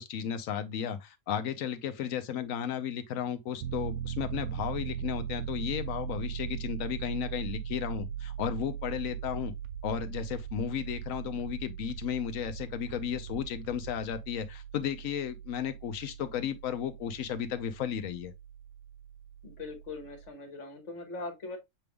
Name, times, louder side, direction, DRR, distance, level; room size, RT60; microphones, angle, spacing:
voice 1, 0.0-9.5 9.8-18.3, left 9 dB, 70° left, 1.0 m, -34 dB
Piano, 3.6-20.3, right 9 dB, 85° right, 1.1 m, -40 dB
sound 1, 6.4-14.2, right 5 dB, 65° right, 0.9 m, -48 dB
voice 2, 19.4-21.6, left 3 dB, 55° left, 1.6 m, -41 dB
6.8 x 3.4 x 2.2 m
omnidirectional pair, 1.5 m